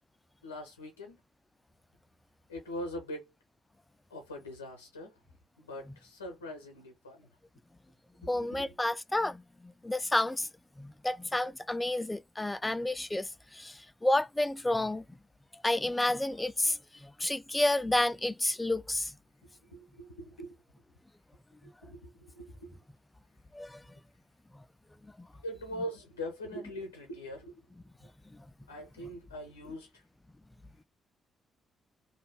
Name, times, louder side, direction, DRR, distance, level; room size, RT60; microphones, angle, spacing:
voice 1, 0.4-1.2 2.5-3.3 4.1-5.2 5.6-7.3 8.2-8.7 19.4-20.6 21.6-22.8 25.4-27.6 28.7-30.0, equal, 90° left, 0.7 m, -42 dB
voice 2, 8.2-10.5 10.8-15.0 15.6-19.1 23.5-23.8, left 1 dB, 15° left, 0.3 m, -30 dB
2.6 x 2.2 x 3.4 m
figure-of-eight pair, 40°, 0 cm